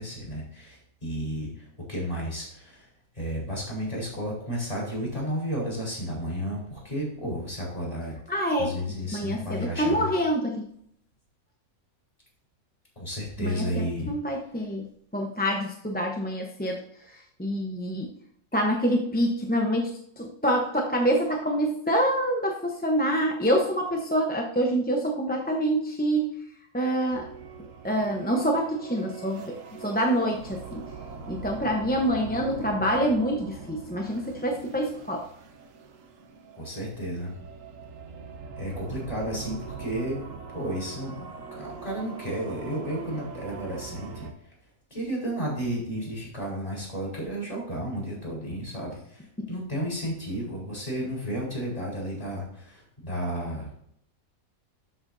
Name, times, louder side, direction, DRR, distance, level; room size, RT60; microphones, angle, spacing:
voice 1, 0.0-2.9 3.2-8.1 8.6-10.1 13.0-14.1 36.6-37.3 38.5-44.3 44.9-53.7, equal, 25° left, -4 dB, 4.0 m, -32 dB
voice 2, 8.3-8.7 9.1-10.6 13.4-14.8 15.1-16.8 17.1-18.1 18.5-26.3 26.7-27.3 27.8-30.8 31.3-35.2 49.4-49.5, equal, 10° left, 1 dB, 0.7 m, -26 dB
sound 1, 27.1-44.3, right 5 dB, 70° right, 1.3 m, -42 dB
12.5 x 7.8 x 2.7 m, 0.70 s
omnidirectional pair, 1.5 m